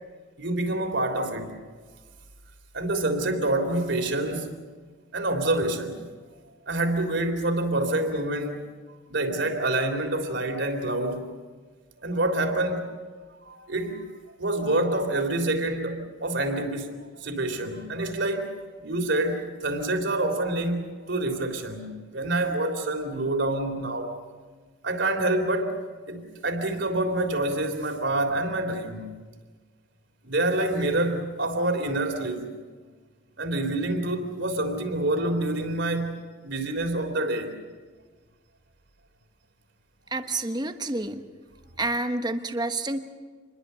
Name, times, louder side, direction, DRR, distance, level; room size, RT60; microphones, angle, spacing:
voice 1, 0.4-1.6 2.7-4.6 5.1-6.1 6.7-8.7 9.1-11.4 12.0-12.9 13.4-14.0 14.4-24.2 24.8-25.8 26.1-29.1 30.2-32.6 33.4-37.6, right 2 dB, 60° right, 5 dB, 3.5 m, -27 dB
voice 2, 40.1-41.3 41.8-43.1, right 2 dB, 20° right, 7 dB, 1.1 m, -29 dB
27.0 x 21.5 x 6.9 m, 1.5 s
head